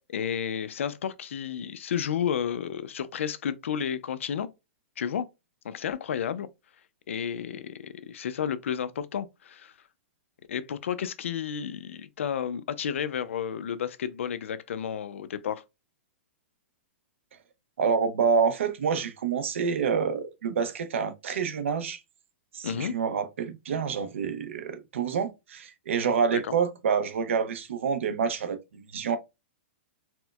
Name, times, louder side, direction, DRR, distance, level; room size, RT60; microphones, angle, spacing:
voice 1, 0.1-4.5 5.0-5.3 5.6-6.5 7.1-9.7 10.5-15.6 22.6-23.0 26.3-26.5, left 8 dB, 90° left, 0.4 m, -32 dB
voice 2, 17.8-22.0 22.5-29.2, right 6 dB, 75° right, 0.6 m, -27 dB
4.3 x 2.1 x 2.2 m
hypercardioid pair, 175°, 7 cm